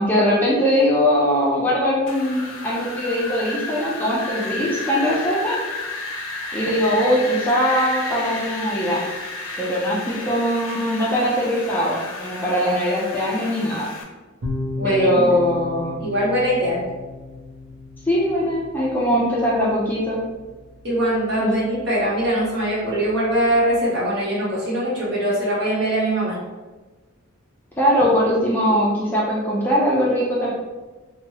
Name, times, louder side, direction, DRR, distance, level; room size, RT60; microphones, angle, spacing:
voice 1, 0.0-5.6 6.5-9.0 9.6-13.9 14.8-16.0 18.1-20.2 21.4-21.5 27.8-30.5, equal, 10° left, -6 dB, 0.4 m, -21 dB
Wind, 2.1-14.0, left 2 dB, 70° left, 0.5 m, -32 dB
sound 1, 14.4-23.8, left 2 dB, 80° right, 0.6 m, -36 dB
voice 2, 14.8-15.3 16.0-16.8 20.8-26.4, right 1 dB, 55° right, -8 dB, 1.2 m, -22 dB
2.9 x 2.2 x 2.8 m, 1.3 s
head